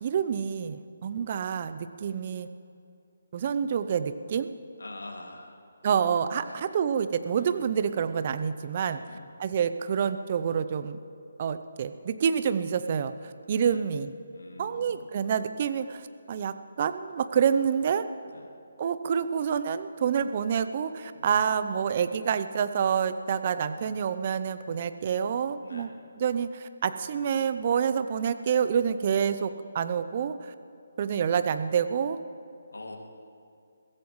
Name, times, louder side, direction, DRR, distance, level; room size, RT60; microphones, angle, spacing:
voice 1, 0.0-2.5 3.3-4.5 5.8-9.0 9.4-11.0 11.4-13.1 13.5-14.1 14.6-18.0 18.8-25.9 26.2-30.4 31.0-32.2, right 7 dB, 40° right, 11 dB, 0.7 m, -27 dB
voice 2, 4.8-5.6 6.4-6.6 7.4-7.5 8.8-9.2 13.6-13.8 14.3-15.1 18.2-18.5 21.1-21.3 25.6-25.9 32.7-33.0, left 2 dB, 80° left, 1 dB, 2.5 m, -45 dB
22.5 x 15.5 x 3.2 m, 2.5 s
figure-of-eight pair, 150°, 0 cm